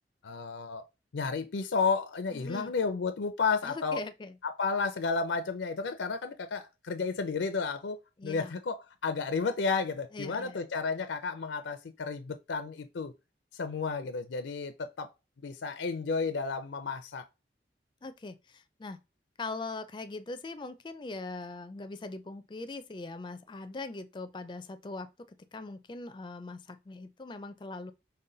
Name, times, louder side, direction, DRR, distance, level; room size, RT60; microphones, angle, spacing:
voice 1, 0.2-0.9 1.1-4.0 4.4-13.1 13.5-15.1 15.4-17.3, left 4 dB, 85° left, 0.5 m, -32 dB
voice 2, 2.3-2.7 3.6-4.3 8.2-8.5 10.1-10.7 18.0-19.0 19.4-27.9, left 3 dB, 25° left, 0.4 m, -41 dB
5.3 x 2.2 x 3.8 m
head